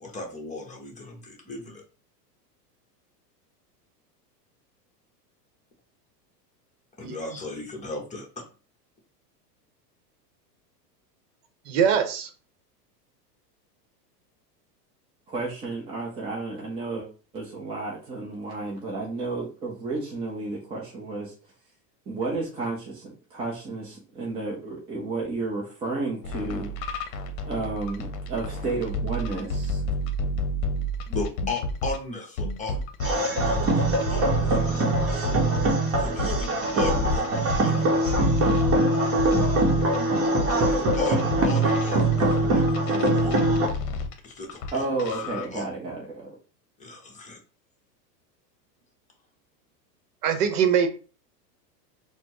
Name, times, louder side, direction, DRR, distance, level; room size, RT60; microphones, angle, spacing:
voice 1, 0.0-1.8 7.0-8.4 31.1-35.4 36.0-36.5 36.7-37.2 37.6-38.1 40.9-43.4 44.2-44.9 45.2-45.7 46.8-47.4, left 2 dB, 15° left, 0.8 m, -36 dB
voice 2, 11.7-12.3 50.2-50.9, right 7 dB, 65° right, 0.8 m, -22 dB
voice 3, 15.3-21.3 22.1-26.7 27.4-29.8 39.6-39.7 44.7-46.3, right 3 dB, 15° right, 0.4 m, -32 dB
sound 1, 26.2-32.0 32.4-44.7 45.0-45.5, left 1 dB, 55° left, 0.8 m, -30 dB
sound 2, 33.0-43.7, right 2 dB, 30° right, 0.9 m, -23 dB
4.1 x 2.1 x 2.9 m
hypercardioid pair, 115°, 49 cm